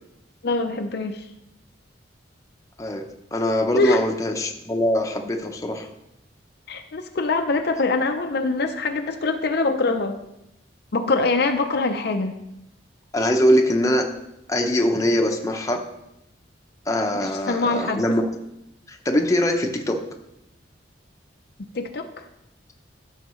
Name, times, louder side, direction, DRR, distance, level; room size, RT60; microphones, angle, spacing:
voice 1, 0.4-1.3 3.7-4.0 6.7-10.2 10.9-12.4 17.2-18.0 21.7-22.2, left 3 dB, 60° left, 5 dB, 0.6 m, -24 dB
voice 2, 3.3-5.9 13.1-14.1 14.5-15.8 16.9-18.3 18.9-20.0, equal, 15° left, 2 dB, 0.8 m, -22 dB
14.0 x 6.4 x 3.1 m, 0.87 s
head